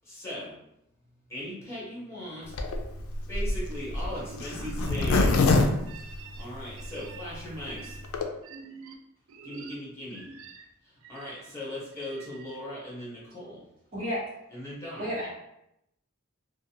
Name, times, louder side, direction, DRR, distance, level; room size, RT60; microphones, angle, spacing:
voice 1, 0.1-0.5 1.3-2.5 3.3-5.4 6.1-8.0 9.4-10.3 11.1-13.6 14.5-15.1, equal, 15° left, -7 dB, 1.1 m, -38 dB
Zipper (clothing), 2.5-6.8 7.3-7.4 7.6-7.7 7.9-8.3, left 3 dB, 85° left, 0.4 m, -25 dB
voice 2, 4.2-5.0 5.4-6.4 6.8-7.2 7.6-8.0 8.4-9.0 9.3-9.8 10.2-10.6 11.0-11.5, right 5 dB, 70° right, 5 dB, 0.4 m, -46 dB
voice 3, 13.9-14.2 15.0-15.3, equal, 45° right, -8 dB, 1.1 m, -31 dB
2.5 x 2.3 x 2.8 m, 0.81 s
head